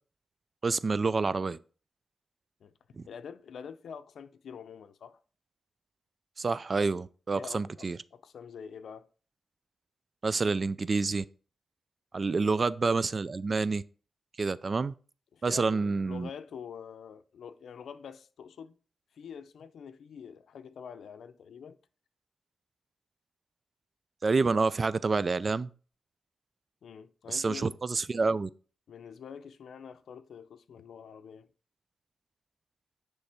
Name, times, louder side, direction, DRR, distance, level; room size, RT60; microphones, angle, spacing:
voice 1, 0.6-1.6 3.0-3.1 6.4-8.0 10.2-11.2 12.1-13.8 14.4-14.9 15.4-16.3 24.2-25.7 27.3-28.5, right 4 dB, 45° right, 0.4 m, -28 dB
voice 2, 3.1-5.2 7.3-9.1 12.4-12.6 15.3-18.8 19.1-21.8 26.8-27.8 28.9-31.5, left 7 dB, 90° left, 0.5 m, -46 dB
10.0 x 3.4 x 4.3 m
cardioid pair, 85°, 0 cm